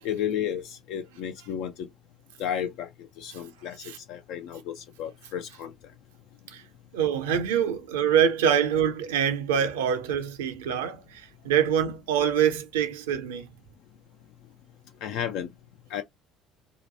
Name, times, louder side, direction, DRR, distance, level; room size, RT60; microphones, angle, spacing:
voice 1, 0.0-1.9 2.4-2.9 3.2-5.7 15.0-15.5 15.9-16.0, left 9 dB, 65° left, 0.3 m, -32 dB
voice 2, 6.9-13.5, right 8 dB, 75° right, 0.5 m, -25 dB
2.8 x 2.1 x 2.6 m
figure-of-eight pair, 55°, 0 cm